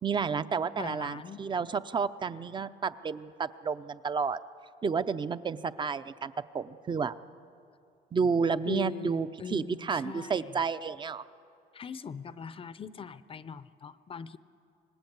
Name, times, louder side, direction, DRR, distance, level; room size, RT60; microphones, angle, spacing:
voice 1, 0.0-4.4 4.8-7.1 8.1-11.2, right 5 dB, 25° right, 14 dB, 0.7 m, -31 dB
voice 2, 0.8-1.4 8.7-10.6 11.7-14.4, left 6 dB, 35° left, 15 dB, 0.7 m, -40 dB
26.0 x 19.5 x 8.1 m, 2.6 s
cardioid pair, 110°, 17 cm